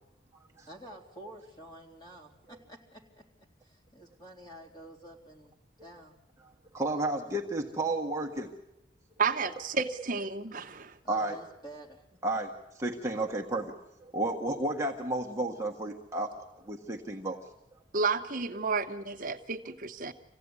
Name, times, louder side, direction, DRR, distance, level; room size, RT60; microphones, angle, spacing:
voice 1, 0.7-3.3 3.6-5.5 5.8-6.2 9.3-9.6 11.0-12.1, right 1 dB, 20° left, 1 dB, 3.7 m, -49 dB
voice 2, 6.7-8.5 11.1-11.4 12.2-13.8 14.0-17.4, right 2 dB, 15° right, 0 dB, 1.4 m, -32 dB
voice 3, 9.2-11.0 17.9-20.1, right 4 dB, 45° right, 5 dB, 1.0 m, -31 dB
26.5 x 16.5 x 9.7 m, 0.92 s
head